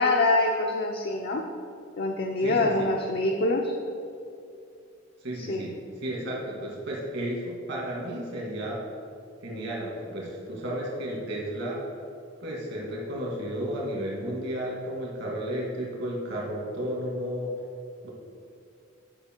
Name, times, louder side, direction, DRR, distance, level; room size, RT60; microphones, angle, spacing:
voice 1, 0.0-1.5 2.0-3.7 5.4-5.7, left 2 dB, 55° left, 1 dB, 0.6 m, -25 dB
voice 2, 2.4-2.9 5.2-5.7 6.0-8.8 9.4-11.8 12.4-17.5 18.0-18.1, equal, 60° right, -3 dB, 2.0 m, -33 dB
10.0 x 5.6 x 4.5 m, 2.5 s
head